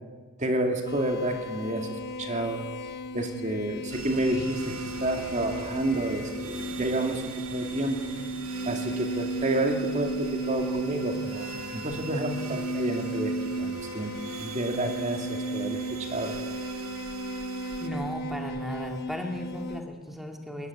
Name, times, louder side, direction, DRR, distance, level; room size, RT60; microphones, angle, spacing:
voice 1, 0.4-2.6 3.1-8.1 8.6-16.4, right 1 dB, 35° right, 4 dB, 2.3 m, -30 dB
sound 1, 0.8-19.8, right 1 dB, 50° left, 1.4 m, -35 dB
sound 2, 3.9-17.9, right 4 dB, 75° right, 2.4 m, -41 dB
voice 2, 17.8-20.7, left 1 dB, ahead, 2 dB, 2.2 m, -35 dB
22.5 x 20.0 x 9.4 m, 1.4 s
head